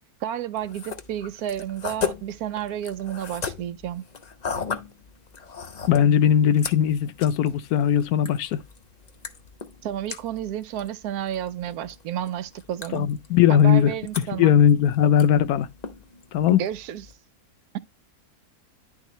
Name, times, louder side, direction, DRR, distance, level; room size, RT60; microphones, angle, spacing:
voice 1, 0.2-4.0 9.8-13.1 13.5-14.5 16.5-17.0, right 11 dB, 85° right, 1.1 m, -31 dB
sound 1, 0.5-17.1, left 6 dB, 45° left, 0.6 m, -38 dB
voice 2, 5.9-8.6 12.9-13.9 14.4-15.7 16.3-16.6, left 9 dB, 80° left, 1.1 m, -19 dB
10.5 x 3.8 x 3.0 m
omnidirectional pair, 1.6 m